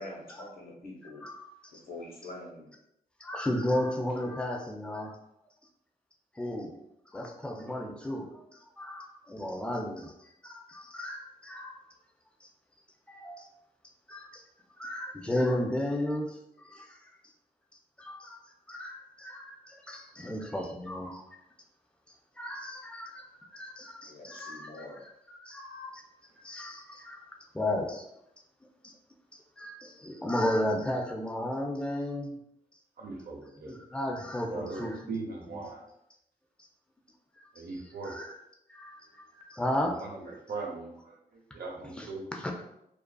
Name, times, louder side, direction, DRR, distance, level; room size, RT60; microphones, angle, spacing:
voice 1, 0.0-1.2 1.7-2.7 20.1-20.3 24.0-25.0, left 2 dB, 60° left, -3 dB, 0.9 m, -45 dB
voice 2, 1.2-1.7 3.2-5.2 6.3-6.8 7.1-11.8 12.4-12.5 13.1-13.5 14.1-14.4 14.8-17.1 18.0-18.4 18.7-21.4 22.4-23.3 23.5-26.0 26.4-27.2 27.5-28.1 28.8-28.9 29.6-32.4 33.6-35.1 35.5-35.6 37.4-37.6 38.0-38.4 38.7-40.0 42.0-42.6, left 1 dB, 5° left, 1 dB, 0.4 m, -34 dB
voice 3, 33.0-33.8 34.5-35.8 37.5-38.2 39.9-42.2, right 3 dB, 65° right, -1 dB, 0.7 m, -40 dB
2.4 x 2.4 x 2.2 m, 0.81 s
cardioid pair, 65°, 17 cm